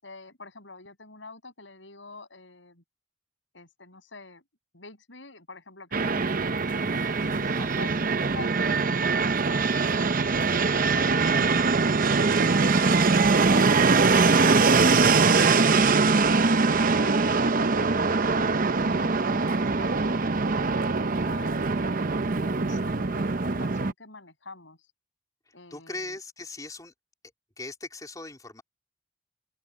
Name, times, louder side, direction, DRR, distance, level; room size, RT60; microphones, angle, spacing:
voice 1, 0.0-2.8 3.5-4.4 4.7-9.2 9.8-11.6 16.5-18.2 18.5-21.7 22.3-24.8 25.5-26.2, left 3 dB, 85° left, 7.1 m, -46 dB
Fixed-wing aircraft airplane, 5.9-23.9, right 4 dB, 50° right, 0.8 m, -22 dB
voice 2, 25.5-26.9 27.6-28.6, left 2 dB, 20° left, 3.6 m, -39 dB
open air
head